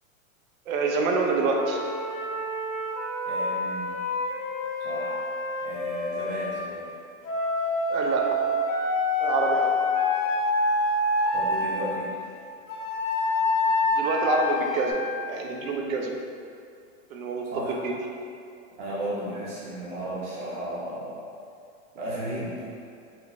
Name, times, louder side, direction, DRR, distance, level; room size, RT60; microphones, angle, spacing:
voice 1, 0.7-1.8 7.9-8.4 9.2-9.7 13.9-16.2 17.1-18.1, right 3 dB, 80° right, 1 dB, 0.6 m, -27 dB
Wind instrument woodwind instrument, 1.5-6.6 7.2-11.9 12.7-14.9, left 2 dB, 80° left, 0.7 m, -27 dB
voice 2, 3.2-4.0 4.8-5.2 5.6-6.9 11.3-12.1 17.5-17.9 18.8-21.3 21.9-22.7, right 1 dB, 60° right, -8 dB, 0.9 m, -34 dB
3.2 x 3.1 x 2.5 m, 2.4 s
supercardioid pair, 180°, 40 cm